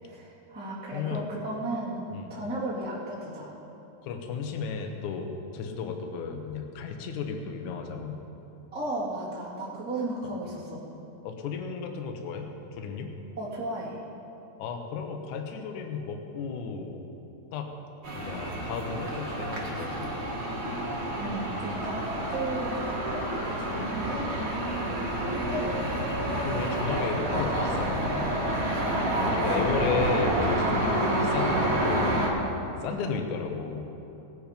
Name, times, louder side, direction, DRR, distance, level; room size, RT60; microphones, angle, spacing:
voice 1, 0.0-2.0 2.3-3.5 8.7-10.8 13.4-14.0 21.2-24.3 25.3-25.8 29.1-29.6 31.0-31.2 32.9-33.2, right 2 dB, 15° right, -7 dB, 0.4 m, -35 dB
voice 2, 0.9-1.2 2.1-2.3 4.0-8.2 11.2-13.1 14.6-17.0 17.5-17.7 18.1-20.2 23.7-23.9 26.4-28.3 29.2-31.1 31.3-32.2 32.8-33.9, left 5 dB, 80° left, 4 dB, 1.7 m, -34 dB
sound 1, 18.0-32.3, right 1 dB, 50° right, 1.6 m, -28 dB
18.5 x 7.8 x 5.1 m, 3.0 s
omnidirectional pair, 4.9 m